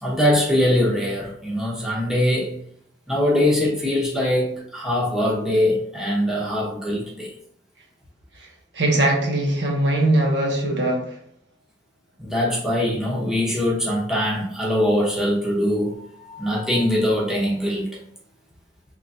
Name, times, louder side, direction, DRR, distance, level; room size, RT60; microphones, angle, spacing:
voice 1, 0.0-2.5 3.1-7.3 12.2-17.9, left 1 dB, 5° right, -5 dB, 0.9 m, -22 dB
voice 2, 8.7-11.2, right 1 dB, 75° right, 0 dB, 0.9 m, -21 dB
3.8 x 3.1 x 2.7 m, 0.66 s
head